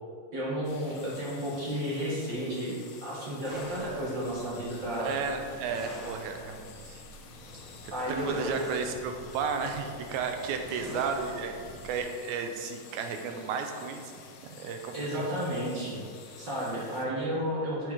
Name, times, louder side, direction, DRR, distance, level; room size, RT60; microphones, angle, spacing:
voice 1, 0.3-5.1 7.9-8.5 14.9-16.0 16.4-17.9, equal, 50° right, -6 dB, 1.6 m, -32 dB
sound 1, 0.6-17.1, left 5 dB, 70° left, 1.7 m, -51 dB
sound 2, 3.4-12.0, equal, ahead, 1.0 m, -46 dB
voice 2, 5.0-7.0 8.1-11.6 11.8-14.0 14.6-15.3 17.3-17.4, right 5 dB, 85° right, 5 dB, 2.1 m, -33 dB
7.7 x 4.7 x 4.8 m, 2.2 s
omnidirectional pair, 3.4 m